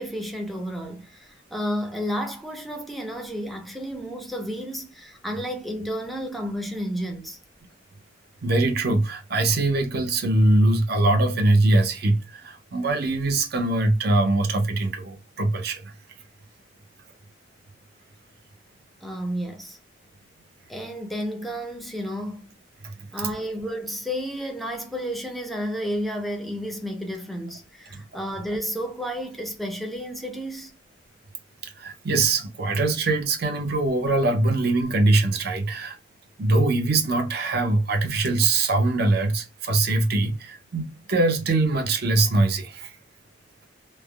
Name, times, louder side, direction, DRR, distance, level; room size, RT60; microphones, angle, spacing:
voice 1, 0.0-7.4 19.0-19.8 20.7-22.5 23.1-30.8, equal, ahead, 0.5 m, -31 dB
voice 2, 8.4-15.9 22.8-22.9 23.2-23.3 27.9-28.0 31.6-36.0 36.4-43.0, right 2 dB, 55° right, 0.6 m, -22 dB
3.3 x 2.1 x 2.2 m
head